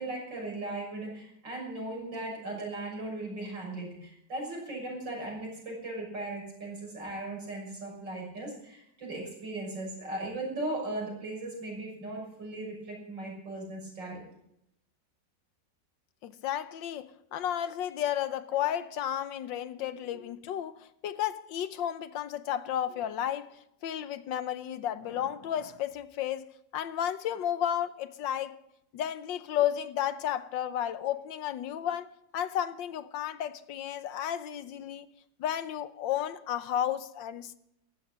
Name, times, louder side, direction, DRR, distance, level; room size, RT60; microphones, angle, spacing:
voice 1, 0.0-14.2 20.1-20.2 22.9-23.0 31.8-31.9, right 2 dB, 75° right, 7.0 m, -38 dB
voice 2, 16.2-28.6 28.9-35.1 35.4-37.6, left 10 dB, 85° left, 1.5 m, -33 dB
15.5 x 12.5 x 6.3 m
omnidirectional pair, 2.0 m